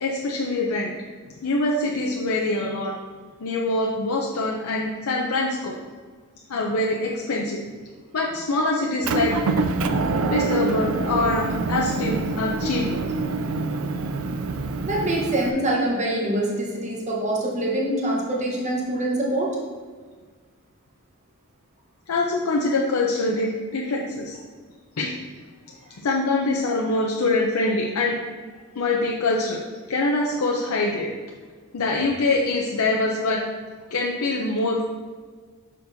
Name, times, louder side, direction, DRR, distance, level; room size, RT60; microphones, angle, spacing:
voice 1, 0.0-0.9 1.4-2.9 3.4-5.8 6.5-7.6 8.1-9.3 10.3-13.0 22.1-24.4 25.0-25.1 26.0-28.2 28.8-29.6 29.9-31.1 31.7-33.4 33.9-34.9, left 2 dB, 75° left, -1 dB, 0.6 m, -24 dB
Motor vehicle (road) / Engine, 9.0-15.5, right 3 dB, 65° right, 0.4 m, -25 dB
voice 2, 14.9-19.5, right 1 dB, 35° right, -3 dB, 1.0 m, -24 dB
6.8 x 6.0 x 2.7 m, 1.5 s
head